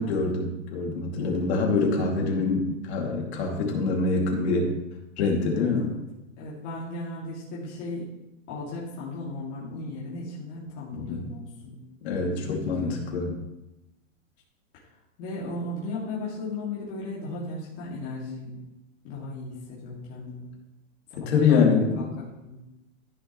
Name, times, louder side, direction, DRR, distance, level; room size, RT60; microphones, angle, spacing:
voice 1, 0.0-4.7 5.2-5.9 10.9-11.3 12.0-13.4 21.2-22.0, left 4 dB, 55° left, -1 dB, 2.6 m, -25 dB
voice 2, 5.5-6.0 6.4-8.1 8.5-11.8 12.1-13.1 15.2-18.6 19.0-20.5 21.2-22.6, left 2 dB, 35° left, -7 dB, 2.5 m, -36 dB
14.5 x 6.6 x 3.1 m, 0.95 s
supercardioid pair, 165°, 39 cm